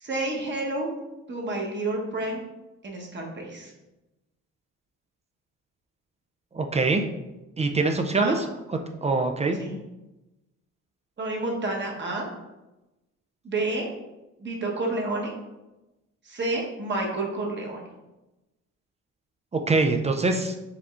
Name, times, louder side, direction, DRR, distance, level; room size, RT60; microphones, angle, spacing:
voice 1, 0.0-0.9 1.3-2.4 2.8-3.7 8.2-8.4 9.6-9.8 11.2-12.3 13.4-13.9 14.4-15.3 16.2-17.8, right 2 dB, 35° right, -1 dB, 1.1 m, -29 dB
voice 2, 6.5-7.0 7.6-8.4 9.0-9.6 19.5-20.5, right 3 dB, 20° right, 5 dB, 0.4 m, -23 dB
4.8 x 3.6 x 2.4 m, 1.0 s
cardioid pair, 90°, 30 cm